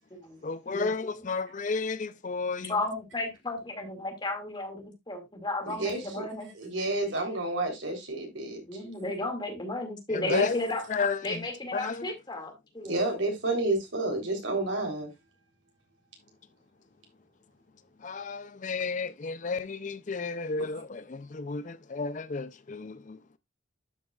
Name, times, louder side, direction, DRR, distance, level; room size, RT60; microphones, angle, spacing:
voice 1, 0.4-2.7 10.1-11.4 11.7-12.1 18.0-23.2, left 4 dB, 40° left, 0.5 m, -32 dB
voice 2, 2.7-6.5 8.7-10.8 11.2-13.0, left 2 dB, 25° left, 2.3 m, -34 dB
voice 3, 5.7-6.3 6.6-8.6 10.2-10.4 12.8-15.1, right 2 dB, 75° right, 3.6 m, -30 dB
12.0 x 6.0 x 2.4 m
head